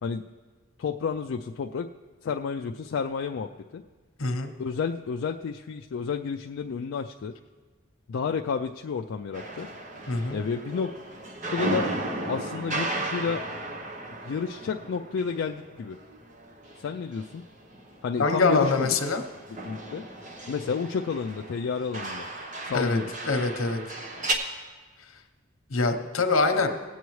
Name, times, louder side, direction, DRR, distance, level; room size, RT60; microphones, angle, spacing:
voice 1, 0.8-1.9 2.2-3.8 4.6-7.3 8.1-9.7 10.3-10.9 11.5-11.9 12.3-13.4 14.3-16.0 16.8-17.4 18.0-19.0 19.6-20.0 20.5-22.3 22.6-23.1, left 5 dB, 60° left, 3 dB, 0.3 m, -31 dB
voice 2, 4.2-4.5 10.1-10.4 18.2-19.2 22.7-23.0 23.2-23.8 25.7-26.7, left 3 dB, 80° left, 6 dB, 0.9 m, -24 dB
sound 1, 9.3-17.4 17.7-24.3, right 2 dB, 35° right, 0.9 m, -35 dB
18.5 x 8.2 x 3.1 m, 1.4 s
head